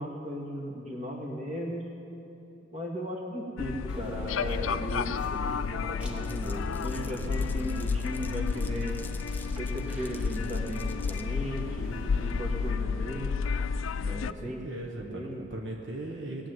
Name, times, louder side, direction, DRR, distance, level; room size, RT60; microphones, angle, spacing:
voice 1, 0.0-1.9 2.7-9.0 9.6-13.4 14.0-15.4, equal, 30° right, -1 dB, 2.0 m, -37 dB
sound 1, 3.6-14.3, left 5 dB, 80° left, 0.4 m, -31 dB
sound 2, 3.9-12.7, equal, 5° right, 1.4 m, -47 dB
Glass, 6.0-11.3, left 4 dB, 10° left, 0.5 m, -50 dB
voice 2, 12.1-12.5 14.0-16.5, right 1 dB, 65° right, 1 dB, 1.3 m, -39 dB
19.5 x 7.5 x 9.3 m, 2.9 s
head